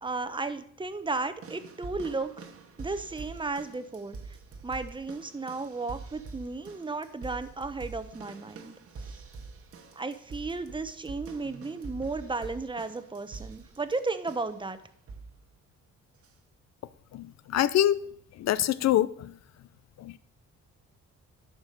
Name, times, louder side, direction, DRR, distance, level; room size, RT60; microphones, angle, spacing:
voice 1, 0.0-2.3 2.8-4.2 4.6-8.8 10.0-14.8, right 3 dB, 15° right, 0.9 m, -34 dB
sound 1, 1.4-14.6 15.1-15.4 16.2-16.3, right 4 dB, 50° right, 1.4 m, -45 dB
voice 2, 17.1-18.0 18.3-19.4 20.0-20.2, left 12 dB, 60° left, 0.6 m, -25 dB
11.5 x 5.1 x 6.5 m
cardioid pair, 90°, 30 cm